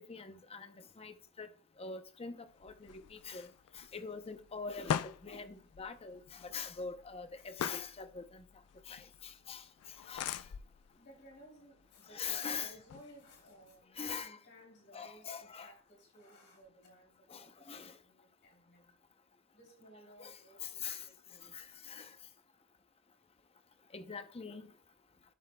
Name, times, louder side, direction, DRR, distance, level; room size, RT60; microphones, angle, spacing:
voice 1, 0.1-1.5 1.8-3.5 3.7-8.4 8.9-9.6 10.1-10.4 12.1-12.7 14.0-14.4 14.9-15.7 17.3-17.9 20.2-21.1 21.5-22.1 23.9-24.7, left 5 dB, 25° left, 0.6 m, -43 dB
sound 1, 2.5-13.8, left 9 dB, 80° left, 0.4 m, -44 dB
voice 2, 10.3-10.7 10.9-19.0 19.5-21.6, equal, 50° left, 3.3 m, -59 dB
11.0 x 7.4 x 2.2 m
head